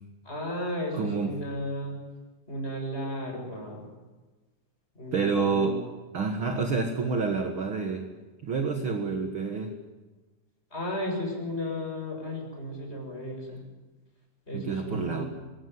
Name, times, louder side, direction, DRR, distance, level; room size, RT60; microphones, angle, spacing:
voice 1, 0.2-2.0 2.5-3.9 4.9-5.9 10.7-13.6 14.5-15.3, left 1 dB, 15° left, 1 dB, 7.8 m, -34 dB
voice 2, 0.9-1.3 5.1-5.8 6.1-8.1 8.4-9.7 14.5-15.2, right 4 dB, 45° right, 4 dB, 2.2 m, -28 dB
26.0 x 21.0 x 9.6 m, 1.2 s
omnidirectional pair, 4.0 m